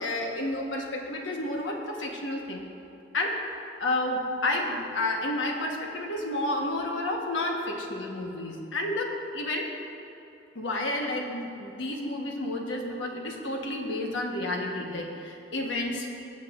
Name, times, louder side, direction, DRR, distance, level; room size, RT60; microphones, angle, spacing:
voice 1, 0.0-2.7 3.1-3.4 3.8-9.7 10.5-16.3, left 1 dB, 80° left, 0 dB, 1.2 m, -31 dB
20.0 x 7.2 x 2.5 m, 2.8 s
head